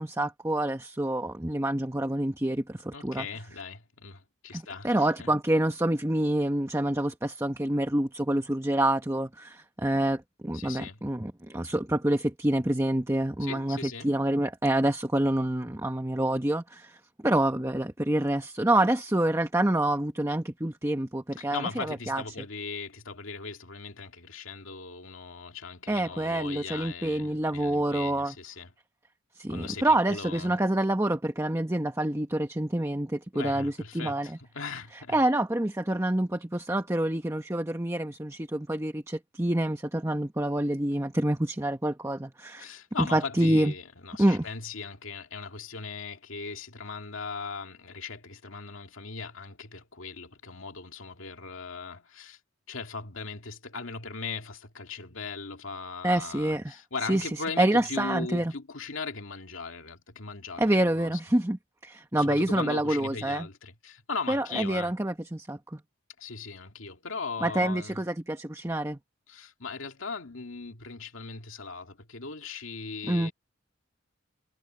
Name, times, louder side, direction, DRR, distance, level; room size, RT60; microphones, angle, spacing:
voice 1, 0.0-3.3 4.5-17.0 17.2-22.2 25.9-28.3 29.3-34.4 35.1-43.7 44.2-44.5 56.0-56.6 57.1-57.3 57.6-58.5 60.6-63.5 64.3-65.8 67.4-69.0 73.1-73.3, right 1 dB, 15° right, 1.1 m, -27 dB
voice 2, 2.9-5.3 10.5-11.0 13.4-14.1 21.4-28.7 29.5-30.6 33.3-35.2 42.6-52.4 52.7-61.1 62.1-64.9 66.2-68.0 69.3-73.3, left 4 dB, 80° left, 2.3 m, -39 dB
head